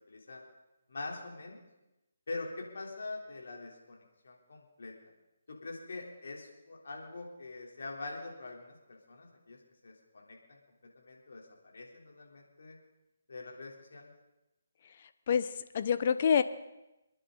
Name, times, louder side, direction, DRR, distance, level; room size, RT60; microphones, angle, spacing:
voice 1, 0.1-0.4 0.9-1.6 2.3-4.9 5.5-9.6 9.8-10.6 11.0-11.5 11.7-12.8 13.3-14.1, left 3 dB, 70° left, 0 dB, 3.6 m, -44 dB
voice 2, 15.3-16.4, left 7 dB, 45° left, 12 dB, 0.8 m, -27 dB
28.0 x 9.9 x 4.0 m, 0.95 s
hypercardioid pair, 155°, 0 cm